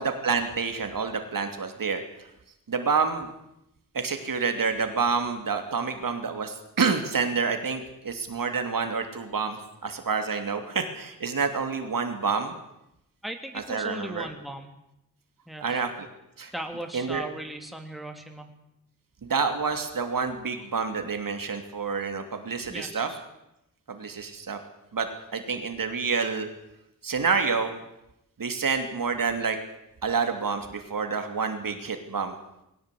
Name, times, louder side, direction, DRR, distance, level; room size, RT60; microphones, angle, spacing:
voice 1, 0.0-2.0 2.7-3.3 3.9-12.5 13.7-14.3 15.6-16.1 16.4-16.5 16.9-17.2 19.2-23.1 23.9-24.6 24.9-26.5 27.0-27.7 28.4-29.6 30.0-32.4, right 5 dB, 80° right, 6 dB, 2.9 m, -28 dB
voice 2, 13.2-14.7 15.5-15.8 16.5-18.6 22.7-23.2, right 1 dB, ahead, 4 dB, 2.8 m, -38 dB
21.5 x 17.5 x 8.5 m, 0.85 s
wide cardioid pair, 115°, 33 cm